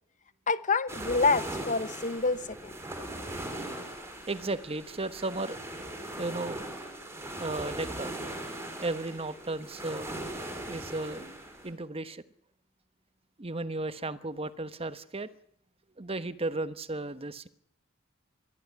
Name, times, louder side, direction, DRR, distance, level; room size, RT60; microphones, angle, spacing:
voice 1, 0.5-2.7, left 4 dB, 40° left, 1.0 m, -27 dB
sound 1, 0.9-11.7, right 1 dB, 15° right, 5.3 m, -39 dB
voice 2, 4.3-5.6 6.2-6.6 7.4-8.1 8.8-10.1 10.7-12.2 13.4-15.3 16.0-17.5, right 2 dB, 30° right, 1.1 m, -34 dB
22.0 x 14.0 x 9.7 m
head